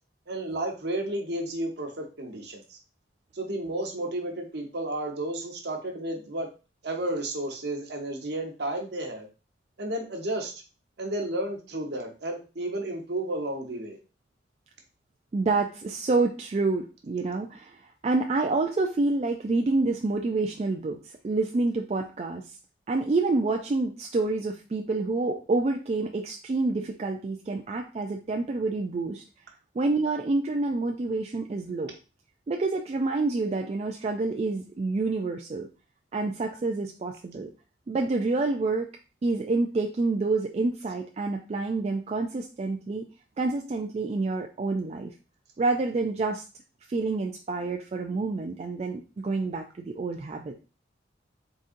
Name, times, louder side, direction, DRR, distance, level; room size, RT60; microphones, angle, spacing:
voice 1, 0.3-2.8 3.3-6.5 6.8-9.3 9.8-10.5 11.0-14.0, right 1 dB, 60° right, 1 dB, 1.0 m, -32 dB
voice 2, 15.3-22.6 22.9-29.2 29.8-31.9 32.5-35.7 36.1-37.5 37.9-38.9 39.2-43.1 43.4-45.1 45.6-46.4 46.9-50.6, right 3 dB, 35° right, 2 dB, 0.3 m, -28 dB
4.0 x 3.7 x 2.5 m, 0.33 s
head